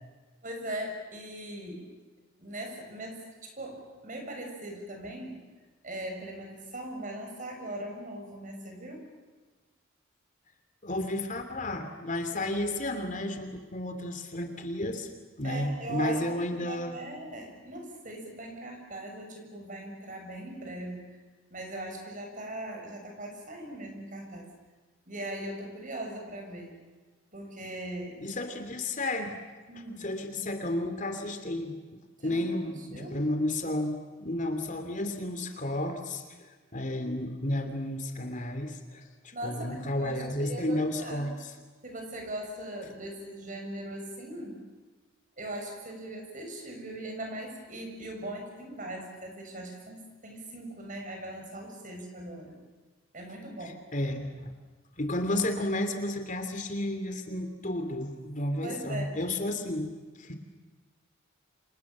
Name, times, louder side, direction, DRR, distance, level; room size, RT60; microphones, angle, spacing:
voice 1, 0.4-2.0 2.4-5.4 5.8-9.0 15.4-16.2 16.5-21.2 21.5-24.5 25.1-26.8 27.3-28.2 29.7-30.1 32.2-32.5 32.9-33.2 39.3-41.3 41.8-44.6 45.4-52.6 53.1-53.8 58.6-59.2, right 1 dB, 40° right, 2 dB, 7.0 m, -40 dB
voice 2, 10.8-15.1 15.4-17.0 28.2-29.4 30.0-36.2 36.7-41.5 53.6-54.5 55.0-59.9 60.2-60.3, left 1 dB, 40° left, 7 dB, 2.8 m, -32 dB
30.0 x 27.0 x 7.3 m, 1.3 s
head